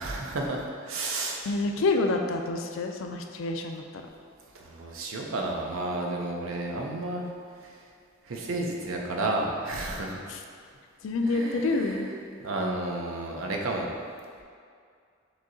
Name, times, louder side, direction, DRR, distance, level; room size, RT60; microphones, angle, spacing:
voice 1, 0.0-1.4 4.5-7.3 7.6-7.8 8.2-10.2 11.2-12.1 12.4-13.9, right 2 dB, 85° right, 0 dB, 0.6 m, -32 dB
voice 2, 1.5-3.8 10.3-10.4 11.0-12.1, left 3 dB, 70° left, 4 dB, 0.4 m, -27 dB
6.0 x 2.8 x 2.7 m, 2.2 s
head